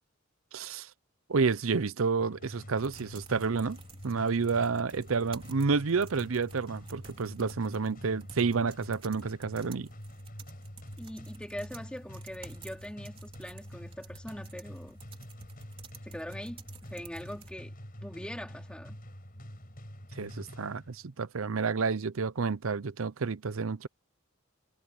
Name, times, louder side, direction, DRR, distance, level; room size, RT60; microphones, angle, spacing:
voice 1, 0.5-0.9 1.3-3.8 4.0-9.9 20.2-23.9, right 4 dB, 80° right, 0.7 m, -30 dB
sound 1, 2.2-21.2, equal, 45° left, 5.9 m, -47 dB
sound 2, 2.8-17.5, right 5 dB, 25° right, 3.8 m, -54 dB
voice 2, 11.0-15.0 16.0-17.7 18.0-19.0, equal, 5° left, 3.0 m, -42 dB
head